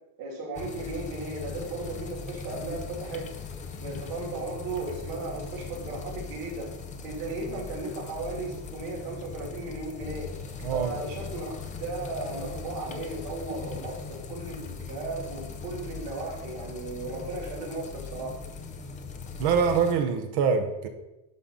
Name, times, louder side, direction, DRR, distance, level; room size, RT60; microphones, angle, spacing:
voice 1, 0.2-3.3 3.8-6.7 7.0-10.3 10.7-11.5 11.8-18.3, right 3 dB, 80° right, 2.8 m, -36 dB
sound 1, 0.6-19.9, left 5 dB, 15° left, 0.4 m, -39 dB
voice 2, 10.6-10.9 19.4-20.9, right 6 dB, 50° right, 1.1 m, -24 dB
11.0 x 3.9 x 5.6 m
cardioid pair, 160°, 49 cm